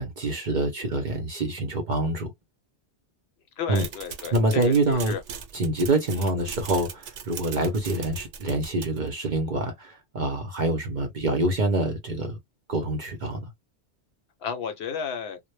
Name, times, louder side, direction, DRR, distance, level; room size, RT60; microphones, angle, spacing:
voice 1, 0.0-2.3 3.7-3.9 4.3-5.1 5.5-12.4 12.7-13.5, right 2 dB, 50° right, 0.6 m, -26 dB
voice 2, 3.6-5.2 6.2-6.3 14.4-15.4, left 7 dB, 65° left, 0.8 m, -33 dB
sound 1, 3.8-9.1, right 7 dB, 90° right, 0.9 m, -39 dB
2.1 x 2.0 x 3.0 m
omnidirectional pair, 1.2 m